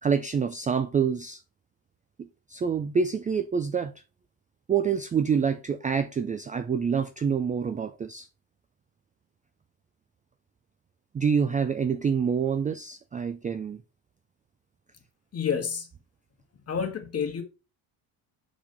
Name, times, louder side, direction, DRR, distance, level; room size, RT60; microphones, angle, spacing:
voice 1, 0.0-1.4 2.2-3.9 4.7-8.3 11.1-13.8, right 6 dB, 20° right, 0.3 m, -27 dB
voice 2, 15.3-15.9 16.7-17.4, left 7 dB, 35° left, 1.7 m, -29 dB
5.9 x 4.3 x 5.1 m
cardioid pair, 115°, 44 cm